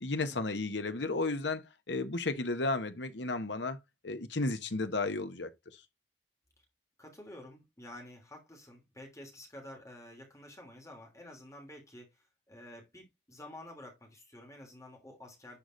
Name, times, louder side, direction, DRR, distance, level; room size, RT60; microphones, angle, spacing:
voice 1, 0.0-1.6 1.9-3.8 4.0-5.5, left 3 dB, 70° left, 1.3 m, -33 dB
voice 2, 7.0-15.6, left 1 dB, 15° left, 3.1 m, -50 dB
11.0 x 5.0 x 3.9 m
head